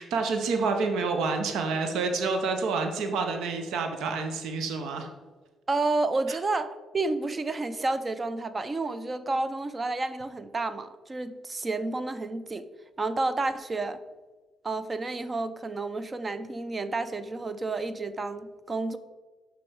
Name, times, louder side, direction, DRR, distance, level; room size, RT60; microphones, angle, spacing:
voice 1, 0.0-5.1 6.3-6.4, right 4 dB, 85° right, 5 dB, 0.8 m, -28 dB
voice 2, 5.7-12.7 13.0-14.0 14.6-19.0, right 3 dB, 30° right, 12 dB, 0.5 m, -30 dB
6.2 x 5.3 x 4.6 m, 1.3 s
cardioid pair, 90°, 0 cm